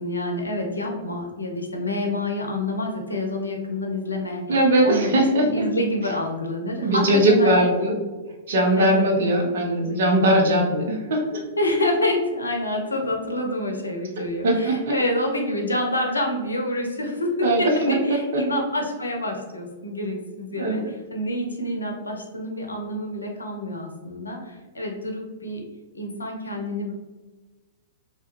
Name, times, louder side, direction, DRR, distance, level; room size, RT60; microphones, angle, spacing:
voice 1, 0.0-4.4 4.8-7.7 8.8-9.1 11.6-25.6 25.9-26.9, left 1 dB, 80° left, 1 dB, 0.6 m, -27 dB
voice 2, 4.5-5.6 6.8-7.9 8.5-11.4 14.4-14.9 17.4-17.6 17.9-18.0 18.3-18.4 20.6-20.8, right 1 dB, 60° right, 1 dB, 0.7 m, -20 dB
3.3 x 2.3 x 3.0 m, 1.2 s
figure-of-eight pair, 105°, 0 cm